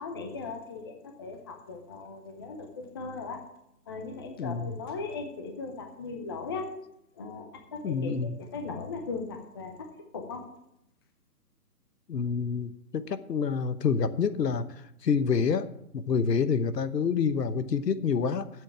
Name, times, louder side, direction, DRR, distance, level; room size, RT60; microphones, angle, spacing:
voice 1, 0.0-3.4 3.9-6.7 7.1-9.9 10.1-10.4, left 4 dB, 15° left, 4 dB, 0.6 m, -38 dB
voice 2, 4.4-4.7 7.8-8.4 12.1-14.6 15.0-18.5, left 6 dB, 75° left, 13 dB, 1.1 m, -27 dB
8.4 x 7.8 x 8.6 m, 0.80 s
hypercardioid pair, 150°, 49 cm